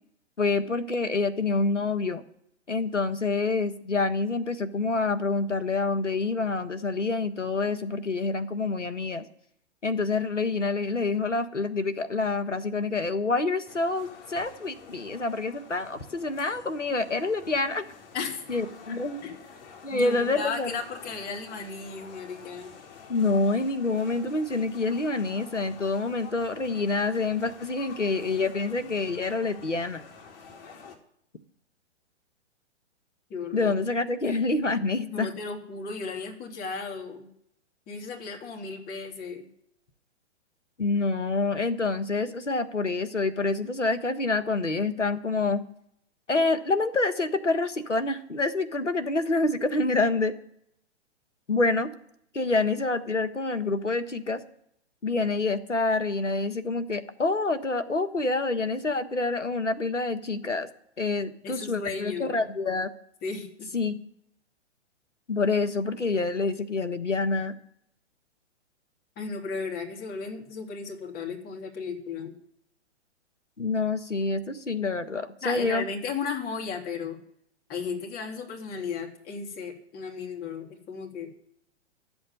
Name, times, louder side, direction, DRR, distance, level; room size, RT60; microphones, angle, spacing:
voice 1, 0.4-2.2 2.7-9.2 9.8-17.9 18.5-19.2 19.8-20.8 23.1-30.0 33.5-35.3 40.8-45.6 46.3-50.3 51.5-51.9 52.3-54.4 55.0-60.7 61.0-62.9 63.7-64.0 65.3-67.5 73.6-75.8, left 3 dB, 90° left, 10 dB, 1.6 m, -27 dB
sound 1, 13.7-31.0, left 6 dB, 50° left, 3.2 m, -48 dB
voice 2, 18.1-18.4 18.9-19.4 19.9-22.7 33.3-33.7 35.0-37.3 37.9-39.5 61.4-62.4 63.2-63.7 69.2-72.3 75.4-77.2 77.7-81.3, left 5 dB, 25° left, 2 dB, 3.1 m, -35 dB
13.0 x 8.0 x 9.8 m, 0.72 s
figure-of-eight pair, 115°, 35 cm